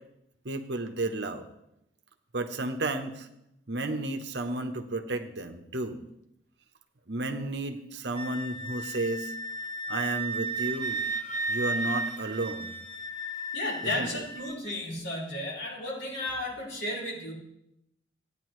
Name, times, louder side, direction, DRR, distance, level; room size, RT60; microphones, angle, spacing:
voice 1, 0.4-1.4 2.3-3.3 3.7-6.0 7.1-9.3 9.9-11.0 11.5-12.7 13.9-14.1, right 2 dB, 65° right, 7 dB, 1.0 m, -32 dB
Wind instrument woodwind instrument, 8.1-14.5, right 2 dB, 40° left, 0.9 m, -34 dB
voice 2, 13.5-17.3, left 1 dB, 80° left, -4 dB, 4.8 m, -33 dB
17.0 x 9.8 x 3.2 m, 0.80 s
head